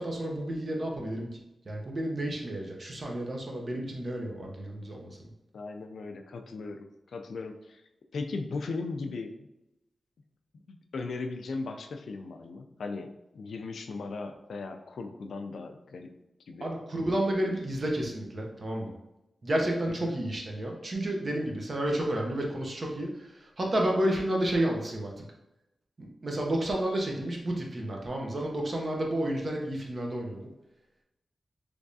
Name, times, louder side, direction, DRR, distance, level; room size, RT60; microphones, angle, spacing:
voice 1, 0.0-1.3 1.7-5.3 16.6-18.9 19.4-25.2 26.0-30.5, right 1 dB, 40° right, 0 dB, 0.7 m, -31 dB
voice 2, 5.5-7.8 8.1-9.5 10.7-16.1 16.5-16.7 19.9-20.1, left 3 dB, 80° left, 5 dB, 0.3 m, -38 dB
3.4 x 3.1 x 2.6 m, 0.91 s
wide cardioid pair, 115°, 0 cm